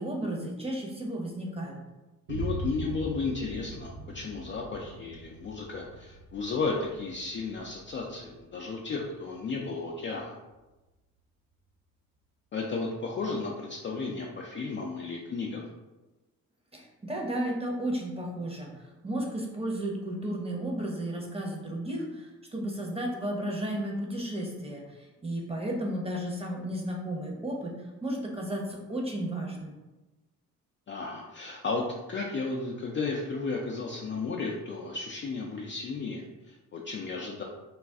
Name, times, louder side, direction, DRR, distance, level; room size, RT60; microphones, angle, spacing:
voice 1, 0.0-1.8 16.7-27.8 28.0-29.7, right 1 dB, 15° right, -1 dB, 0.8 m, -33 dB
voice 2, 2.3-10.4 12.5-15.7 30.9-37.4, left 4 dB, 30° left, -2 dB, 0.4 m, -34 dB
Boom, 2.3-10.1, right 1 dB, 75° right, 0.6 m, -41 dB
2.4 x 2.3 x 3.5 m, 1.1 s
hypercardioid pair, 45°, 42 cm